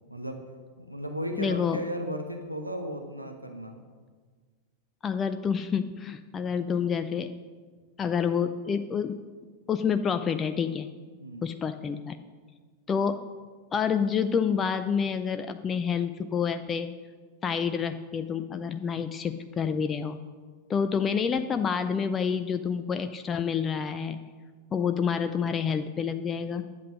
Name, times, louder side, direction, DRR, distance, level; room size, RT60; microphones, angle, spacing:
voice 1, 0.1-0.4 0.8-3.8 11.2-11.4, equal, 90° right, 4 dB, 1.0 m, -35 dB
voice 2, 1.4-1.8 5.0-7.4 8.0-9.2 9.7-10.9 11.4-12.2 12.9-13.2 13.7-16.9 17.4-20.2 20.7-24.2 24.7-26.7, left 6 dB, 20° left, 9 dB, 0.5 m, -28 dB
11.0 x 8.0 x 6.4 m, 1.5 s
figure-of-eight pair, 90°, 0 cm